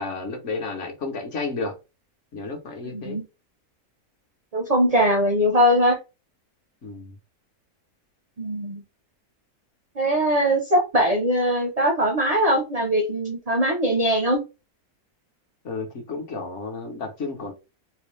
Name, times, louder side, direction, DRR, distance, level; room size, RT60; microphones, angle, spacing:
voice 1, 0.0-1.8 2.3-3.2 6.8-7.2 15.6-17.5, left 3 dB, 55° left, 1.1 m, -32 dB
voice 2, 2.8-3.2 4.5-6.0 8.4-8.8 10.0-14.4, equal, 40° right, 0.5 m, -21 dB
4.1 x 2.1 x 3.1 m
omnidirectional pair, 1.6 m